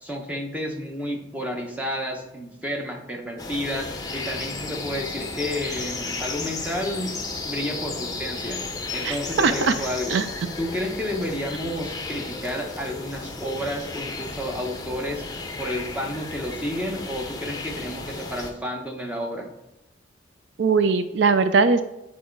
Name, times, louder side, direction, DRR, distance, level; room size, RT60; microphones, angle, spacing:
voice 1, 0.0-7.1 7.4-8.6 8.9-10.2 10.6-15.2 15.6-19.5, equal, 10° right, 1 dB, 1.0 m, -31 dB
sound 1, 3.4-18.5, left 3 dB, 20° left, 0.7 m, -34 dB
voice 2, 9.0-9.7 10.1-10.3 20.6-21.8, right 4 dB, 70° right, 11 dB, 0.4 m, -20 dB
9.4 x 4.1 x 4.6 m, 0.91 s
head